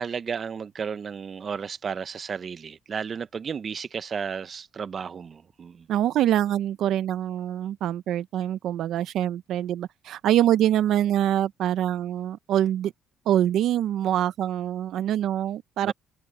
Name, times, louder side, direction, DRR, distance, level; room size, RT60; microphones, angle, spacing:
voice 1, 0.0-5.9 15.8-15.9, right 6 dB, 45° right, 0.9 m, -33 dB
voice 2, 5.9-12.9 13.3-15.9, right 11 dB, 70° right, 0.7 m, -24 dB
open air
supercardioid pair, 80°, 0 cm